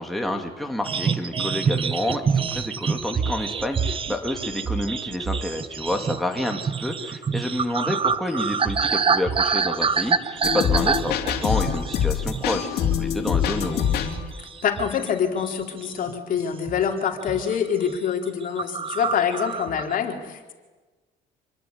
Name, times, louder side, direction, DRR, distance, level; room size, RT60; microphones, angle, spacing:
voice 1, 0.0-13.9, left 1 dB, ahead, 2 dB, 2.9 m, -29 dB
sound 1, 0.8-12.6 12.9-13.1 13.6-15.1 15.4-16.2 16.7-16.9 17.2-17.6 17.9-18.0 18.2-18.3 18.6-20.0, right 6 dB, 30° right, 1.1 m, -26 dB
sound 2, 10.4-14.2, left 9 dB, 70° left, 3.5 m, -24 dB
voice 2, 14.6-20.5, left 7 dB, 55° left, 3 dB, 4.1 m, -25 dB
27.0 x 20.5 x 9.8 m, 1.3 s
cardioid pair, 110°, 17 cm